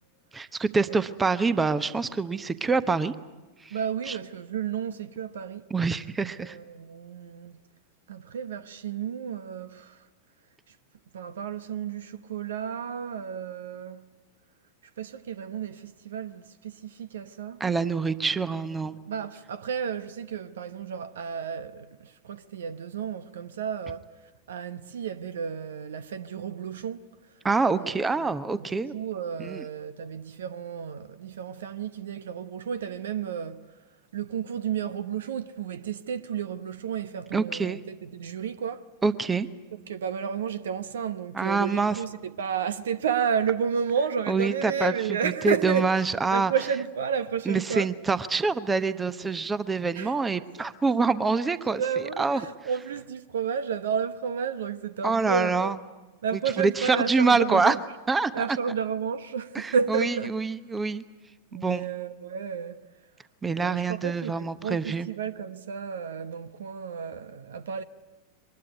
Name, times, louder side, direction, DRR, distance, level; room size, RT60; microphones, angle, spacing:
voice 1, 0.3-3.1 3.6-3.8 4.1-4.2 5.7-6.6 17.6-19.0 27.4-28.9 29.4-29.6 37.3-37.8 39.0-39.5 41.3-42.0 44.3-44.9 45.2-46.5 47.5-51.8 52.2-52.4 55.0-55.8 56.3-57.8 58.1-58.6 59.5-61.0 61.5-61.8 63.4-65.1, right 4 dB, 15° right, 0.9 m, -26 dB
voice 2, 3.7-5.7 6.4-7.6 8.1-10.0 11.1-14.1 15.0-17.6 19.1-24.1 24.5-27.1 27.8-28.7 28.9-33.6 34.1-38.9 39.8-45.9 46.3-47.9 49.9-50.1 51.8-55.8 56.2-57.8 58.3-60.3 61.5-62.8 63.5-67.8, right 7 dB, 65° right, 0.9 m, -32 dB
24.0 x 20.5 x 9.5 m
figure-of-eight pair, 90°, 0 cm